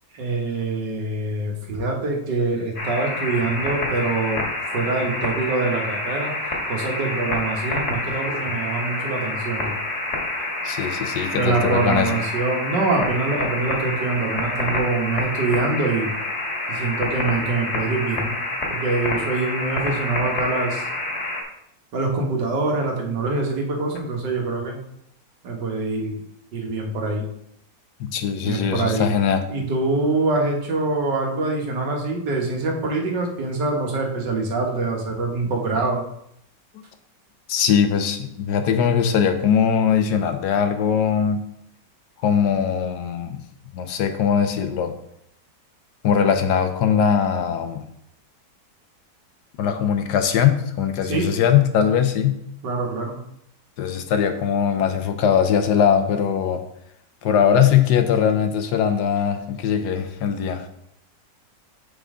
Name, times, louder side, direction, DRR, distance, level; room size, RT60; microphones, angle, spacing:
voice 1, 0.1-4.4 4.7-9.8 11.3-16.1 16.7-18.4 18.7-20.9 21.9-24.8 25.4-26.2 26.5-27.3 28.4-29.1 29.5-36.0 51.1-51.3 52.6-53.2, right 3 dB, 75° right, 0 dB, 1.8 m, -24 dB
sound 1, 2.8-21.4, left 2 dB, 40° left, 1.6 m, -28 dB
voice 2, 10.6-12.2 28.0-29.4 37.5-41.4 42.2-43.4 43.7-44.9 46.0-47.8 49.6-52.4 53.8-56.6 57.2-60.7, left 8 dB, 75° left, 8 dB, 1.2 m, -20 dB
6.8 x 5.3 x 3.6 m, 0.74 s
omnidirectional pair, 1.9 m